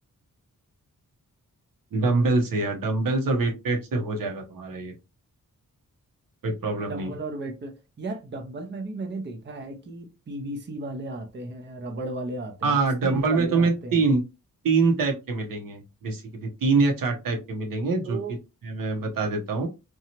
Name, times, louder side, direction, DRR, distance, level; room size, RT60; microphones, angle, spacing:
voice 1, 1.9-5.0 6.4-7.1 12.6-14.2 14.6-18.2 18.6-19.7, right 3 dB, 80° right, 0.9 m, -24 dB
voice 2, 6.9-14.0 18.0-18.4, right 2 dB, 35° right, 0.6 m, -35 dB
2.8 x 2.3 x 2.8 m
wide cardioid pair, 110°, 33 cm